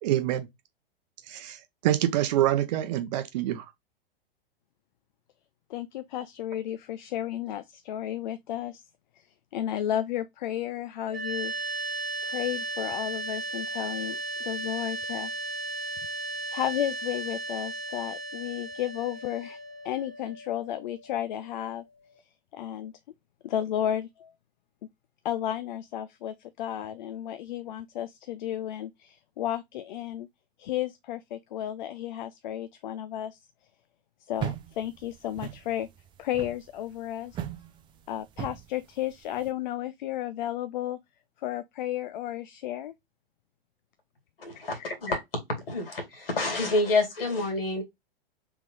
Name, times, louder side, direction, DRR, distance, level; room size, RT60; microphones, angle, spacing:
voice 1, 0.0-0.5 1.3-3.6, right 13 dB, 45° right, 0.8 m, -26 dB
voice 2, 5.7-8.8 9.2-9.3 9.5-11.5 12.2-15.3 16.5-19.6 19.8-21.8 22.5-22.9 23.4-24.3 25.2-30.3 30.6-33.4 34.3-35.9 36.2-37.4 38.1-41.0 41.4-42.9 44.7-44.8, left 11 dB, 50° left, 0.4 m, -33 dB
sound 1, 11.1-22.2, right 2 dB, 90° right, 1.2 m, -36 dB
sound 2, 34.4-39.5, right 11 dB, 15° right, 0.4 m, -39 dB
voice 3, 44.4-45.2 45.7-47.8, left 2 dB, 65° left, 2.2 m, -28 dB
3.8 x 3.5 x 3.1 m
figure-of-eight pair, 100°, 30 cm